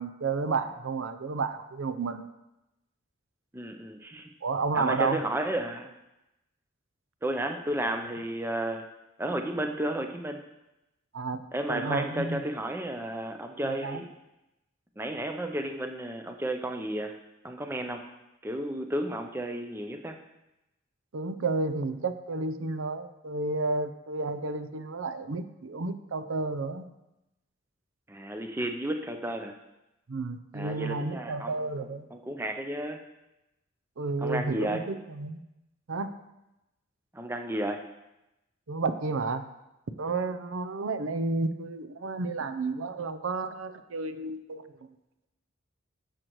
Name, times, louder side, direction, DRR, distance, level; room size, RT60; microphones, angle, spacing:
voice 1, 0.0-2.3 4.4-5.2 11.1-11.4 11.7-12.4 13.8-14.0 21.1-26.9 30.1-32.1 34.0-35.4 35.9-36.2 38.7-39.4 40.0-44.6, right 3 dB, 75° right, 10 dB, 0.6 m, -31 dB
voice 2, 3.5-4.3 4.7-5.9 7.2-8.9 9.2-10.4 11.5-14.1 15.0-17.2 17.4-18.0 18.4-20.2 28.1-29.5 30.5-33.0 34.2-34.8 37.1-37.8, right 1 dB, 10° right, 5 dB, 0.5 m, -32 dB
15.0 x 6.5 x 3.1 m, 0.94 s
head